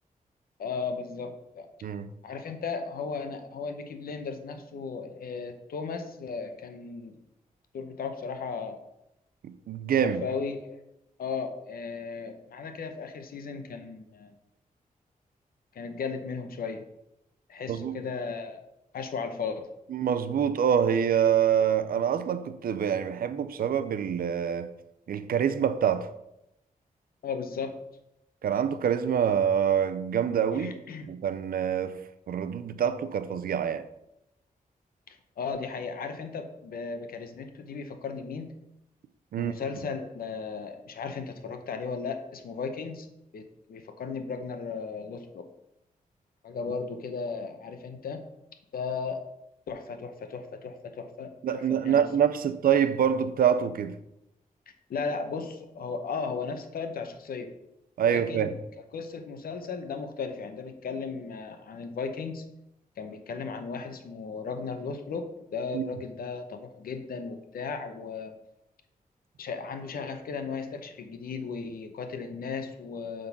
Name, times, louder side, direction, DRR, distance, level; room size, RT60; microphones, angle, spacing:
voice 1, 0.6-1.7 2.2-7.2 7.7-8.8 10.0-10.8 11.2-14.4 15.7-16.8 17.5-18.6 18.9-19.7 27.2-27.8 30.5-31.1 35.1-38.5 39.4-43.1 43.3-45.5 46.4-48.3 48.7-49.2 49.7-52.1 54.9-57.5 58.0-58.5 58.9-62.5 63.0-68.3 69.4-73.3, left 5 dB, 90° left, 0.9 m, -36 dB
voice 2, 9.4-10.2 17.7-18.0 19.9-24.7 25.1-26.1 28.4-30.7 31.1-32.0 32.3-33.9 39.3-39.5 51.4-53.9 58.0-58.5 65.7-65.8, right 8 dB, 85° right, 0.6 m, -26 dB
7.7 x 3.9 x 6.0 m
wide cardioid pair, 120°, 15 cm